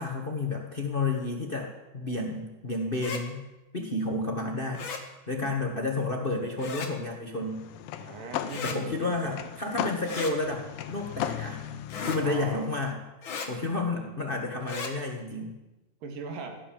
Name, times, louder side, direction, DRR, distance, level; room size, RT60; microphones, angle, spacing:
voice 1, 0.0-3.4 3.7-4.9 5.3-7.6 8.6-11.6 12.0-13.0 13.2-15.5, left 2 dB, 65° left, 2 dB, 0.5 m, -31 dB
sound 1, 2.9-3.2 4.7-5.0 6.6-6.9 8.5-8.8 10.0-10.3 11.9-12.2 13.2-13.5 14.6-14.9, left 5 dB, 45° left, 1.9 m, -35 dB
sound 2, 7.4-12.9, left 11 dB, 80° left, 2.7 m, -37 dB
voice 2, 8.0-9.3 12.1-12.7 13.8-14.1 16.0-16.6, right 4 dB, 70° right, 4 dB, 3.9 m, -40 dB
17.5 x 11.0 x 7.4 m, 1.0 s
omnidirectional pair, 4.1 m